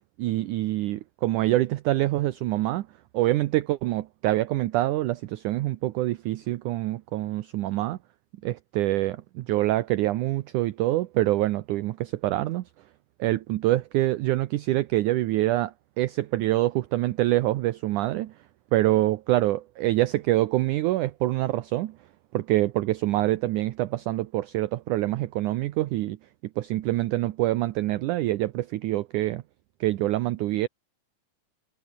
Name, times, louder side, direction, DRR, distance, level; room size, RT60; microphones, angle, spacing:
voice 1, 0.2-2.9 3.1-8.0 8.4-12.6 13.2-18.3 18.7-21.9 22.3-26.2 26.6-29.4 29.8-30.7, right 16 dB, 75° right, 1.8 m, -25 dB
omnidirectional pair, 4.5 m